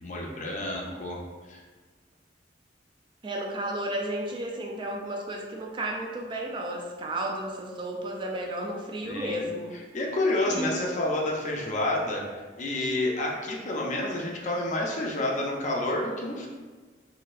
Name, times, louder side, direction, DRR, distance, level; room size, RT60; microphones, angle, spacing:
voice 1, 0.0-1.2 1.5-1.6 9.0-9.4 9.7-12.2 12.6-16.5, left 1 dB, 40° left, -1 dB, 0.5 m, -29 dB
voice 2, 3.2-9.7 10.6-10.8, right 1 dB, 25° right, 0 dB, 0.3 m, -33 dB
4.0 x 2.6 x 2.4 m, 1.4 s
head